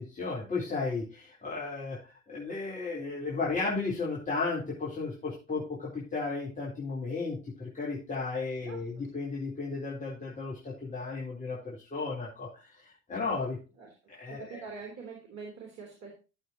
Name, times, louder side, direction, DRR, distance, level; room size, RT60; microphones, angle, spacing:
voice 1, 0.0-13.6 14.1-14.6, left 4 dB, 20° left, -6 dB, 4.0 m, -34 dB
voice 2, 8.6-9.1 13.8-13.9 14.3-16.2, right 5 dB, 45° right, 1 dB, 3.6 m, -45 dB
13.5 x 7.9 x 3.0 m, 0.31 s
figure-of-eight pair, 65°, 37 cm